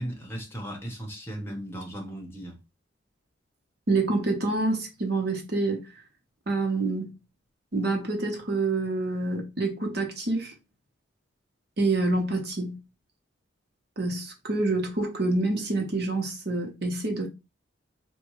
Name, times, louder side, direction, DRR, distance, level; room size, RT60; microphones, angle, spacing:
voice 1, 0.0-2.6, equal, 15° left, 0.9 m, -36 dB
voice 2, 3.9-5.8 6.5-7.1 7.7-10.5 11.8-12.8 14.0-17.3, right 2 dB, 60° right, 1.0 m, -27 dB
4.2 x 2.3 x 3.0 m
head